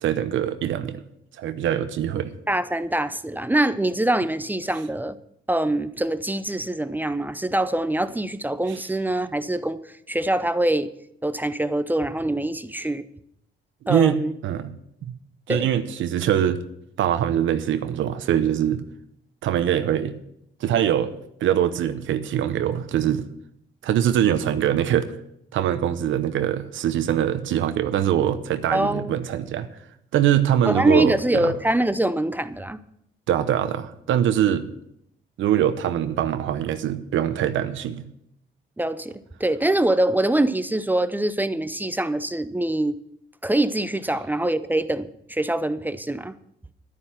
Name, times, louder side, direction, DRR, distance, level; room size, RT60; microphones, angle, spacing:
voice 1, 0.0-1.0 1.4-2.3 13.8-14.7 15.1-15.2 15.5-16.6 17.0-18.8 19.4-20.1 20.6-21.1 21.4-23.3 23.8-25.1 25.5-29.7 30.1-31.5 33.3-34.7 35.4-38.0, right 10 dB, 75° right, 0.8 m, -23 dB
voice 2, 2.5-5.2 5.5-9.8 10.1-10.9 11.2-13.0 13.9-14.3 15.5-15.7 28.7-29.1 30.7-32.8 38.8-43.0 43.4-46.3, right 1 dB, 10° right, 0.6 m, -24 dB
11.5 x 9.8 x 5.7 m
cardioid pair, 90°, 20 cm